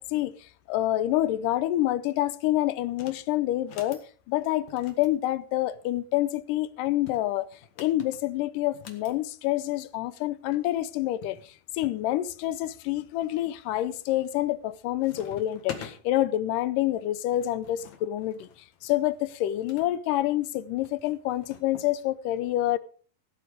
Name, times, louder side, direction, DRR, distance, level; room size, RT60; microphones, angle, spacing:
voice 1, 0.0-4.0 4.3-7.5 7.8-18.5 18.8-22.8, left 14 dB, 80° left, 2.0 m, -27 dB
sound 1, 2.9-3.2 3.6-4.1 4.7-6.1 6.9-9.1 10.2-10.3 10.5-10.6 11.2-12.0 12.6-13.1 13.6-14.0 14.3-14.7 15.0-16.0 16.9-19.9 20.8-21.9, left 7 dB, 55° left, 2.6 m, -47 dB
16.5 x 9.4 x 4.9 m
omnidirectional pair, 4.5 m